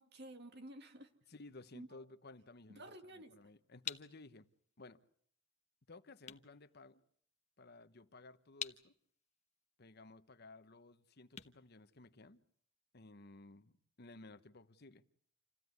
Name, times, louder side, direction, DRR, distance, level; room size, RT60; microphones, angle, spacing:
voice 1, 0.0-1.1 1.7-2.0 2.7-3.3, right 1 dB, 55° right, 2.5 m, -52 dB
voice 2, 1.3-4.5 4.8-5.0 5.9-7.0 7.6-8.9 9.8-12.4 12.9-15.0, left 2 dB, 55° left, 1.1 m, -57 dB
sound 1, 3.8-12.6, left 8 dB, 35° left, 1.1 m, -51 dB
28.0 x 16.0 x 9.6 m
head